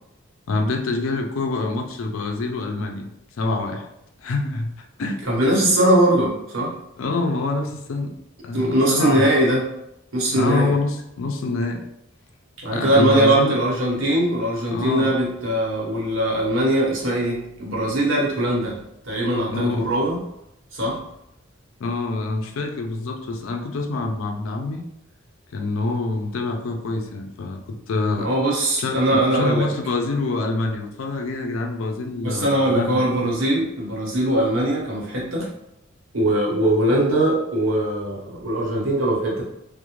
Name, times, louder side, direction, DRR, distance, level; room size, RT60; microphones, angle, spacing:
voice 1, 0.5-3.9 4.2-5.2 7.0-8.1 8.4-9.3 10.3-11.9 12.6-13.6 14.7-15.1 19.5-19.9 21.8-24.9 25.5-28.3 28.8-33.0, left 3 dB, 75° left, 3 dB, 0.4 m, -26 dB
voice 2, 5.3-6.7 8.5-9.6 10.1-10.7 12.6-18.8 19.0-20.2 20.7-21.0 28.2-29.7 32.2-35.5 36.1-39.4, right 1 dB, 70° right, -4 dB, 0.9 m, -21 dB
2.4 x 2.0 x 3.0 m, 0.81 s
head